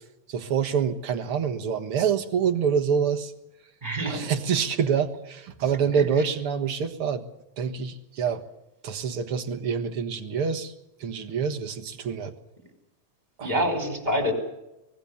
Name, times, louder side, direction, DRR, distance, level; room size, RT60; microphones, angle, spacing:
voice 1, 0.3-3.3 4.0-7.2 7.6-8.4 8.8-10.7 11.0-12.3 13.4-13.7, right 7 dB, 55° right, 7 dB, 2.2 m, -26 dB
voice 2, 3.8-4.3 5.9-6.0 13.4-14.3, equal, 15° right, 6 dB, 5.0 m, -26 dB
24.5 x 20.0 x 7.1 m, 0.90 s
omnidirectional pair, 3.3 m